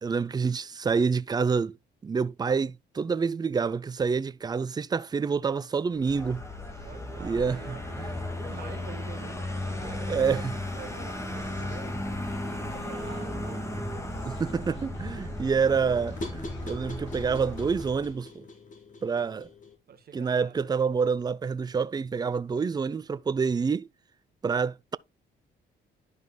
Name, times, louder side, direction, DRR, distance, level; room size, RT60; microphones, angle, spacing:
voice 1, 0.0-1.8 2.0-6.4 7.2-8.2 9.9-10.5 14.2-18.4 19.0-19.5 20.1-23.9 24.4-25.0, right 5 dB, 20° right, 0.4 m, -27 dB
Vehicle, 5.9-18.2, left 1 dB, 15° left, 2.1 m, -35 dB
voice 2, 6.7-8.1 8.3-12.0 12.3-13.7 15.2-15.3 19.2-19.3 19.9-20.7, right 7 dB, 50° right, 1.5 m, -47 dB
Human voice, 8.5-17.9, left 8 dB, 70° left, 2.6 m, -53 dB
sound 1, 15.1-19.8, left 1 dB, 40° left, 3.3 m, -44 dB
11.0 x 5.3 x 2.3 m
cardioid pair, 90°, 20 cm